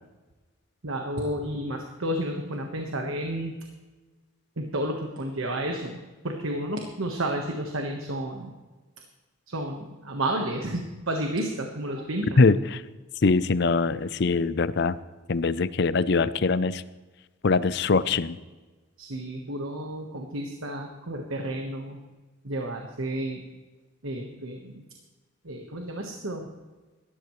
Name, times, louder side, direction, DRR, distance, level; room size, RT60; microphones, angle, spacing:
voice 1, 0.8-3.6 4.6-8.5 9.5-12.5 19.0-22.0 22.4-23.4 24.0-24.8 25.4-26.5, right 1 dB, 80° right, 3 dB, 1.4 m, -31 dB
voice 2, 12.4-12.8 13.2-15.0 15.3-16.8 17.4-18.4, left 4 dB, 55° left, 16 dB, 0.5 m, -22 dB
17.5 x 13.5 x 3.2 m, 1.3 s
head